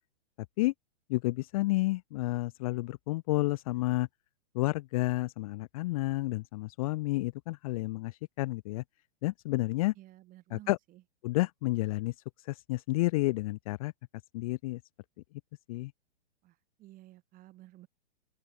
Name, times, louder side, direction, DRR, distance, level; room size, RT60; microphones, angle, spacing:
voice 1, 1.1-4.1 4.5-8.8 9.2-9.9 10.5-10.8 11.2-12.1 12.5-13.9 14.3-14.8 15.7-15.9, left 20 dB, 35° left, 0.4 m, -30 dB
voice 2, 9.9-11.0 16.4-17.9, right 16 dB, 25° right, 1.2 m, -54 dB
open air
hypercardioid pair, 130°, 33 cm